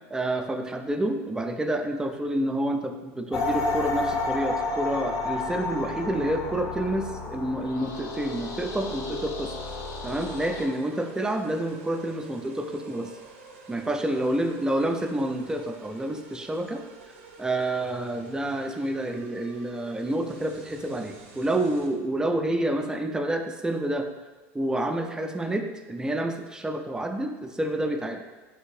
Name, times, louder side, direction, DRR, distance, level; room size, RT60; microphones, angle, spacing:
voice 1, 0.1-9.6 10.0-13.1 13.7-16.8 17.4-24.1 24.5-28.2, right 1 dB, 10° right, 5 dB, 0.3 m, -28 dB
sound 1, 3.3-10.7, left 3 dB, 50° left, 0.5 m, -31 dB
sound 2, 7.6-21.9, right 4 dB, 80° right, 0.5 m, -50 dB
3.5 x 2.5 x 3.1 m, 1.2 s
hypercardioid pair, 90°, 7 cm